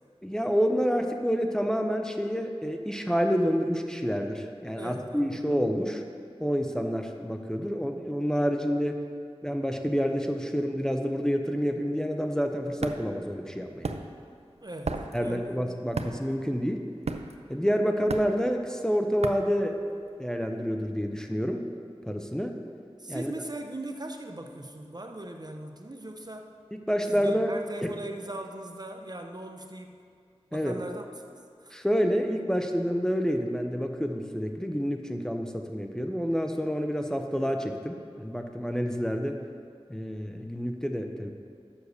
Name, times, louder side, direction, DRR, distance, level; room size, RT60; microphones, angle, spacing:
voice 1, 0.2-6.0 6.4-9.0 9.4-13.9 15.1-16.8 17.5-19.8 20.2-21.6 22.1-22.6 23.1-23.3 26.7-27.5 27.8-27.9 30.5-30.8 31.7-39.4 39.9-41.3, equal, 5° left, 4 dB, 0.6 m, -28 dB
voice 2, 4.8-5.5 14.6-15.6 23.0-26.5 27.1-30.0 30.5-31.1 31.6-31.8, right 1 dB, 40° right, 4 dB, 0.6 m, -39 dB
sound 1, 12.2-20.4, right 3 dB, 85° right, 0.4 m, -37 dB
7.2 x 6.4 x 6.5 m, 2.2 s
wide cardioid pair, 45°, 11 cm